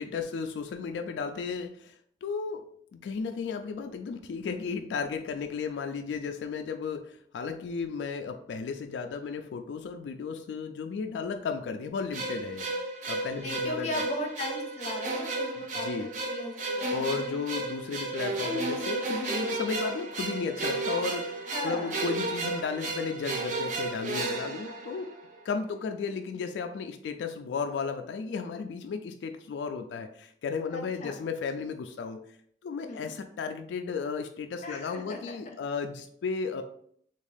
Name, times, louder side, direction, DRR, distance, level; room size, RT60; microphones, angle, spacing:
voice 1, 0.0-2.0 2.2-2.6 2.9-12.7 13.1-14.0 15.8-16.1 16.9-25.1 25.4-32.2 32.6-36.6, left 5 dB, 90° left, 6 dB, 0.3 m, -34 dB
sound 1, 12.1-25.4, right 2 dB, 45° right, 0.5 m, -33 dB
voice 2, 13.4-17.0 21.5-21.9 30.7-31.2 32.8-33.1 34.6-35.6, left 1 dB, 40° left, 2 dB, 0.6 m, -37 dB
3.4 x 2.3 x 3.3 m, 0.65 s
head